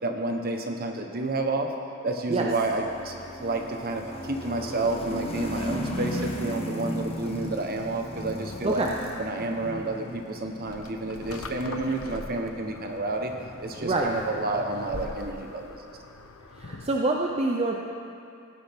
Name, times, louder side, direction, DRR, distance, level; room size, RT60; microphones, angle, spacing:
voice 1, 0.0-1.7 2.0-3.1 3.4-8.8 9.2-13.3 13.6-15.8, right 2 dB, 45° right, 3 dB, 1.2 m, -30 dB
sound 1, 2.3-15.5, left 1 dB, 30° left, 1.3 m, -37 dB
sound 2, 10.7-17.0, left 3 dB, 85° left, 0.8 m, -43 dB
voice 2, 16.6-17.8, right 2 dB, 30° right, 0 dB, 0.6 m, -26 dB
17.5 x 11.5 x 3.6 m, 2.5 s
head